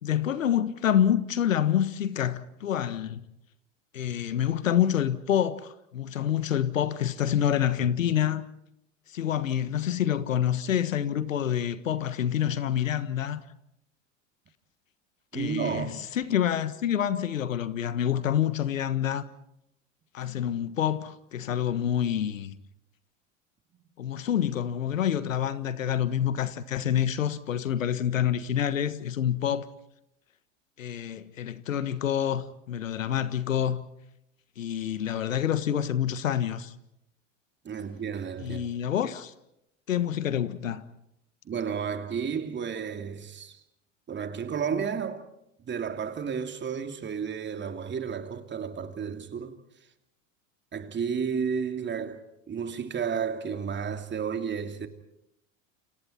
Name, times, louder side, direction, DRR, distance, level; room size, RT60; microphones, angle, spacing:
voice 1, 0.0-3.2 3.9-8.4 9.1-13.4 15.3-19.2 20.1-22.5 24.0-29.7 30.8-33.9 34.6-36.7 38.4-39.3 39.9-40.8, left 10 dB, 80° left, 1.5 m, -27 dB
voice 2, 15.3-15.9 37.6-38.6 41.4-43.6 44.1-45.2 45.6-49.6 50.7-54.9, right 6 dB, 30° right, 2.9 m, -32 dB
29.5 x 28.5 x 4.4 m
hypercardioid pair, 85°, 38 cm